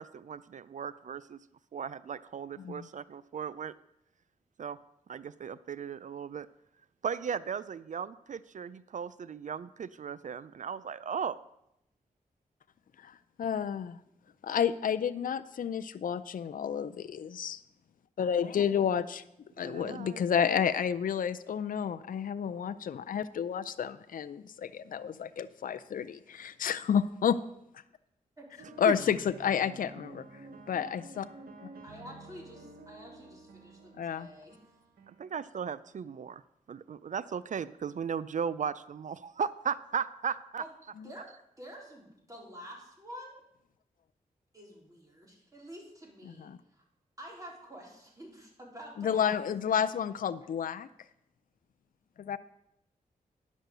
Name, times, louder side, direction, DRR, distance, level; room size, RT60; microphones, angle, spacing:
voice 1, 0.0-1.4 1.7-3.7 4.6-4.8 5.1-6.5 7.0-11.4 19.6-20.2 28.9-29.0 35.1-36.4 36.7-40.6, right 7 dB, 55° right, 17 dB, 0.4 m, -36 dB
voice 2, 13.0-14.0 14.4-17.6 18.2-19.2 19.6-27.4 28.8-30.2 30.7-31.3 34.0-34.3 46.4-46.6 49.0-50.9 52.2-52.4, left 8 dB, 65° left, 11 dB, 0.5 m, -30 dB
sound 1, 28.6-35.3, right 2 dB, 80° right, 1.2 m, -51 dB
voice 3, 31.8-34.8 40.6-40.7 41.0-43.4 44.5-46.8 47.2-49.4 49.8-49.9, equal, 20° right, -2 dB, 3.9 m, -49 dB
10.5 x 6.3 x 6.7 m, 0.80 s
cardioid pair, 55°, 15 cm